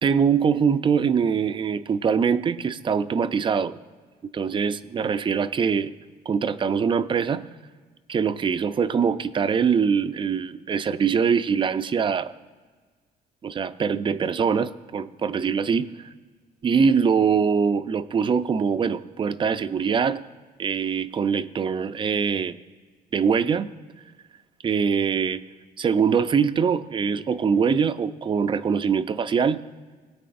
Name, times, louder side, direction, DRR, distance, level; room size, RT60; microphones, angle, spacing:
voice 1, 0.0-3.8 4.2-5.9 6.3-7.5 8.1-12.3 13.4-15.9 16.6-20.2 20.6-22.6 23.1-23.7 24.6-25.4 25.8-29.6, right 6 dB, 30° right, 12 dB, 0.4 m, -23 dB
21.5 x 8.7 x 2.5 m, 1.5 s
cardioid pair, 110°, 17 cm